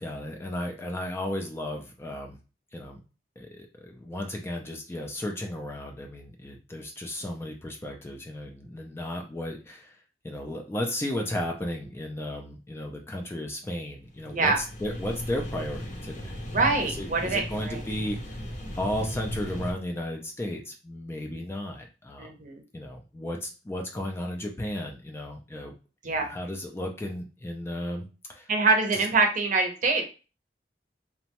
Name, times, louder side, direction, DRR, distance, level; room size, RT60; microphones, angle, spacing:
voice 1, 0.0-2.4 2.7-3.0 3.4-10.0 10.2-18.4 18.7-22.3 22.7-25.7 26.0-28.5 28.9-29.0, left 1 dB, 15° left, 2 dB, 0.3 m, -34 dB
sound 1, 14.1-19.7, equal, 45° left, 0.7 m, -36 dB
voice 2, 14.3-14.6 16.5-17.8 22.2-22.6 26.0-26.3 28.5-30.0, right 3 dB, 45° right, 3 dB, 0.6 m, -24 dB
2.9 x 2.2 x 2.9 m, 0.33 s
head